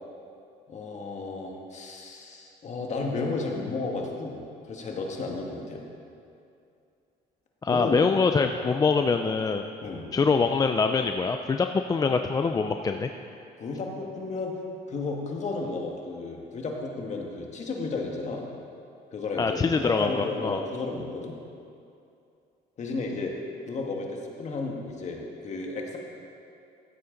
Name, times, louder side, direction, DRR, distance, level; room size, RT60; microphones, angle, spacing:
voice 1, 0.7-5.8 7.7-8.0 9.8-10.1 13.6-14.5 14.9-18.4 19.1-21.3 22.8-23.3 23.6-26.0, left 3 dB, 45° left, 0 dB, 1.7 m, -33 dB
voice 2, 7.6-9.7 10.1-13.1 19.4-20.6, left 4 dB, 20° left, 6 dB, 0.4 m, -24 dB
15.0 x 8.4 x 3.9 m, 2.6 s
cardioid pair, 110°, 17 cm